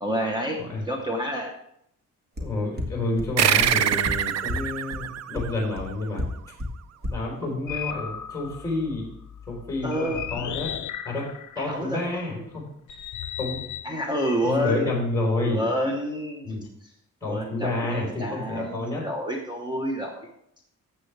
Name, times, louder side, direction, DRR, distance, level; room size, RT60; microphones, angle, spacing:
voice 1, 0.0-0.6 0.8-1.5 9.8-10.2 11.6-12.2 13.8-14.9 15.4-16.6 17.3-20.3, equal, 15° right, 1 dB, 1.0 m, -29 dB
voice 2, 2.4-6.2 7.1-9.1 9.5-10.7 11.0-11.2 11.6-12.6 13.4-13.6 14.4-15.6 16.4-16.6 17.2-19.0, left 2 dB, 10° left, -4 dB, 3.9 m, -29 dB
sound 1, 2.4-2.5 2.8-2.9 3.2-3.3 3.6-3.7 4.0-4.1 4.5-4.6 4.9-5.0 5.4-5.5 5.8-5.9 6.2-6.3 6.6-6.7 7.0-7.1, left 1 dB, 30° right, 1.6 m, -29 dB
sound 2, 3.4-6.3, right 10 dB, 55° right, 0.5 m, -25 dB
sound 3, 7.7-12.0 12.9-15.3, left 9 dB, 65° left, 0.6 m, -36 dB
13.0 x 7.7 x 3.4 m, 0.73 s
wide cardioid pair, 165°, 32 cm